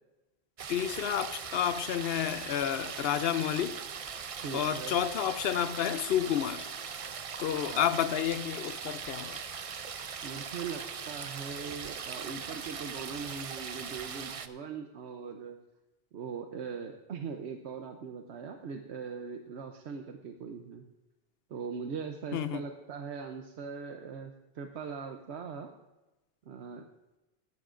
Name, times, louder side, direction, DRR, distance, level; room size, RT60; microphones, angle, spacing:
sound 1, 0.6-14.5, right 6 dB, 45° right, 0.5 m, -40 dB
voice 1, 0.7-3.8 4.5-6.7 7.4-9.4 22.3-22.6, left 10 dB, 70° left, 0.8 m, -30 dB
voice 2, 4.4-5.1 7.7-7.9 10.2-15.6 16.1-20.8 21.5-25.7 26.5-26.8, right 6 dB, 90° right, 1.0 m, -40 dB
16.5 x 12.0 x 2.5 m
omnidirectional pair, 1.1 m